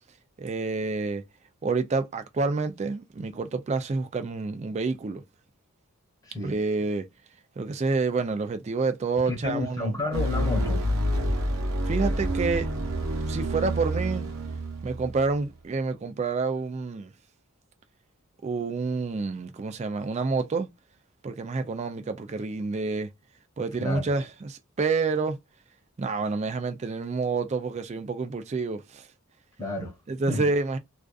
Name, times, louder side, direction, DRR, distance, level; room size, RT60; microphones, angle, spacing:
voice 1, 0.4-1.2 1.6-5.2 6.4-7.1 7.6-10.0 11.9-12.7 13.3-14.3 14.8-17.1 18.4-20.7 21.2-23.1 23.6-25.4 26.0-29.1 30.1-30.8, right 4 dB, 30° right, 0.3 m, -28 dB
voice 2, 9.2-10.8 23.8-24.1 29.6-29.9 30.3-30.5, left 2 dB, 15° left, 0.9 m, -31 dB
sound 1, 10.1-15.4, equal, 70° right, 0.8 m, -28 dB
2.4 x 2.4 x 2.3 m
head